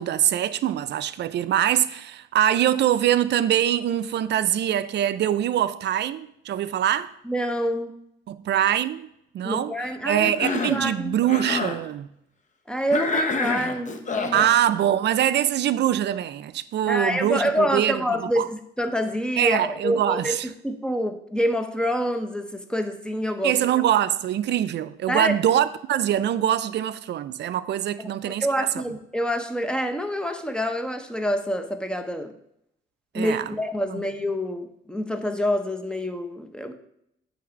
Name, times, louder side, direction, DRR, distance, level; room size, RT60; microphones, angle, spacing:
voice 1, 0.0-7.1 8.3-9.1 9.3-9.7 10.0-12.1 14.3-18.5 19.4-20.5 23.4-28.5 33.1-33.5, right 11 dB, 60° right, 0.4 m, -23 dB
voice 2, 7.2-7.9 9.4-10.4 10.7-11.2 12.7-14.5 16.9-23.6 25.1-25.4 28.0-28.1 28.4-32.3 33.1-36.7, equal, 5° left, 0.7 m, -27 dB
Cough, 10.2-10.8 11.2-11.8 12.9-14.5, left 3 dB, 40° left, 0.9 m, -27 dB
8.5 x 3.3 x 5.1 m
cardioid pair, 90°, 20 cm